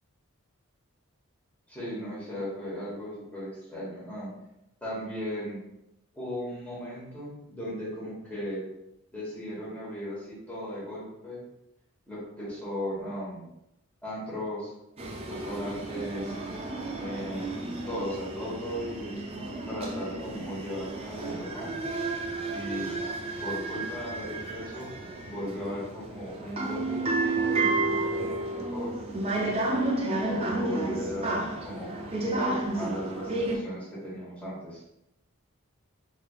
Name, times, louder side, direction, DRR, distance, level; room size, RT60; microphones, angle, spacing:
voice 1, 1.7-4.3 4.8-5.6 6.1-8.6 9.1-11.4 12.1-13.4 14.0-14.7 15.3-16.3 17.0-17.5 17.9-19.1 19.7-21.7 22.5-22.9 23.4-24.9 25.3-28.9 30.0-31.4 31.6-31.9 32.3-34.8, equal, 5° left, -9 dB, 1.1 m, -36 dB
sound 1, 15.0-33.6, right 2 dB, 25° right, 0.4 m, -32 dB
3.7 x 3.2 x 2.3 m, 0.85 s
head